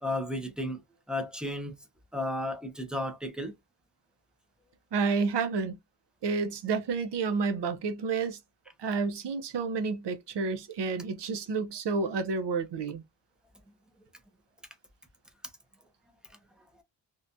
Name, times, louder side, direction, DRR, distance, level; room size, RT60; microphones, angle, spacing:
voice 1, 0.0-0.8 1.1-1.8 2.1-3.5, left 1 dB, ahead, 0.4 m, -33 dB
voice 2, 4.9-5.8 6.2-8.4 8.8-13.0, right 4 dB, 65° right, 0.6 m, -30 dB
2.8 x 2.2 x 2.5 m
wide cardioid pair, 155°, 45 cm